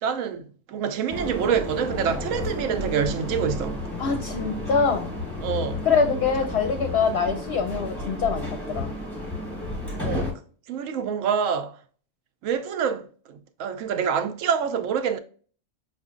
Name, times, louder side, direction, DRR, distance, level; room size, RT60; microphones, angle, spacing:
voice 1, 0.0-3.8 5.4-5.8 10.0-10.3 10.7-11.8 12.4-15.2, right 7 dB, 80° right, 0.9 m, -26 dB
sound 1, 1.1-10.3, left 2 dB, ahead, 1.2 m, -32 dB
voice 2, 4.0-5.1 5.8-8.9, left 5 dB, 60° left, 0.7 m, -24 dB
5.9 x 2.5 x 2.4 m
omnidirectional pair, 1.3 m